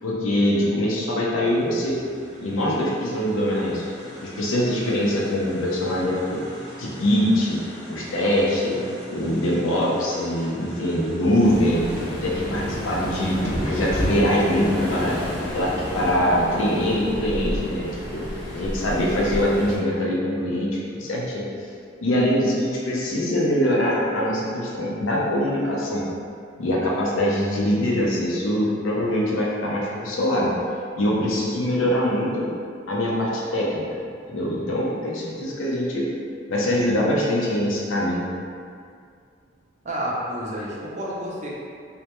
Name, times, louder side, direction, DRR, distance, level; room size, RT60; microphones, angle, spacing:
voice 1, 0.0-2.0 2.4-3.8 4.2-6.4 6.8-7.6 7.9-8.8 9.1-11.9 12.2-15.1 15.5-18.2 18.5-21.5 22.0-26.0 26.6-30.5 30.9-32.5 32.9-33.9 34.3-36.1 36.5-38.3, left 1 dB, 90° left, -4 dB, 0.5 m, -23 dB
sound 1, 1.4-16.1, equal, 15° right, 0.8 m, -42 dB
Waves surf, 11.4-19.8, equal, 25° left, 0.5 m, -30 dB
voice 2, 39.8-41.6, equal, 35° right, -5 dB, 0.4 m, -30 dB
2.1 x 2.1 x 2.9 m, 2.3 s
head